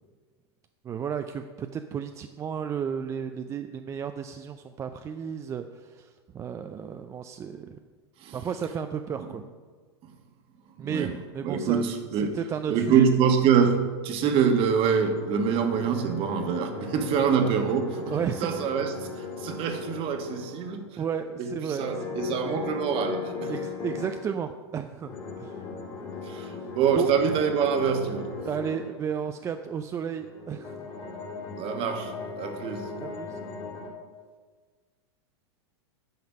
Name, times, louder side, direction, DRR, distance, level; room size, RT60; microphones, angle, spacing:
voice 1, 0.8-7.8 8.3-9.4 10.8-13.1 18.1-18.5 21.0-22.1 23.5-25.1 25.4-25.6 26.6-26.7 26.9-27.1 28.4-30.7 33.0-33.4, right 7 dB, 20° right, 7 dB, 0.4 m, -33 dB
voice 2, 10.8-11.1 11.4-12.4 12.7-18.2 18.4-20.8 21.5-23.5 26.3-28.4 31.6-32.9, right 6 dB, 40° right, 6 dB, 1.2 m, -25 dB
sound 1, 14.8-20.9 21.7-24.3 25.0-28.8 30.2-33.9, left 5 dB, 30° left, 2.1 m, -38 dB
9.4 x 5.6 x 5.3 m, 1.5 s
hypercardioid pair, 110°, 14 cm